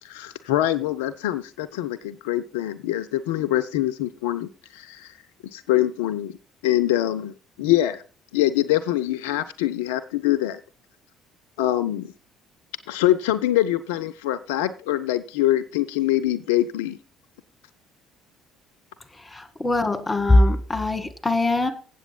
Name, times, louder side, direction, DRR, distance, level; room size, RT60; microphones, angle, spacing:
voice 1, 0.0-5.1 5.5-6.4 6.6-8.0 8.3-10.6 11.6-12.1 12.9-17.0, left 14 dB, 70° left, 10 dB, 0.4 m, -24 dB
voice 2, 19.2-21.7, left 2 dB, 15° left, 8 dB, 1.7 m, -21 dB
8.2 x 7.6 x 5.3 m, 0.38 s
figure-of-eight pair, 55°, 0 cm